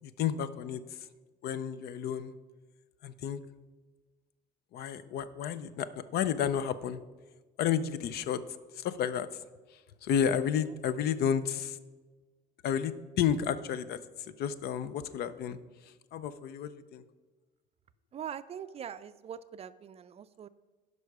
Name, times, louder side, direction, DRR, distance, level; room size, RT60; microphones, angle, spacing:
voice 1, 0.0-0.8 1.4-2.3 3.0-3.4 4.7-7.0 7.6-8.4 8.7-9.3 10.0-11.8 12.6-14.0 14.4-15.6 16.1-17.0, left 8 dB, 70° left, 14 dB, 0.5 m, -31 dB
voice 2, 18.1-20.5, right 8 dB, 40° right, 13 dB, 0.4 m, -42 dB
11.0 x 5.5 x 4.7 m, 1.3 s
cardioid pair, 110°, 17 cm